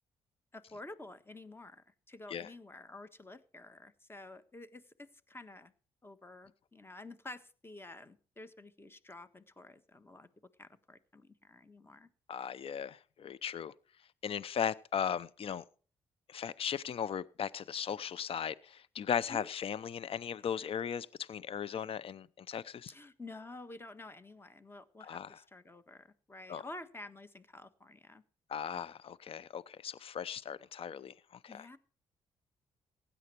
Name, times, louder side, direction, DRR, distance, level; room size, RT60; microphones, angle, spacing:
voice 1, 0.5-5.7 6.0-10.3 10.6-12.1 19.3-19.5 22.9-28.2 31.5-31.8, left 2 dB, 20° left, 1.5 m, -50 dB
voice 2, 12.3-13.7 14.2-15.6 16.3-22.9 25.0-25.4 26.5-26.6 28.5-31.1 31.4-31.7, left 8 dB, 55° left, 0.7 m, -37 dB
16.0 x 10.0 x 4.5 m
supercardioid pair, 65°, 12 cm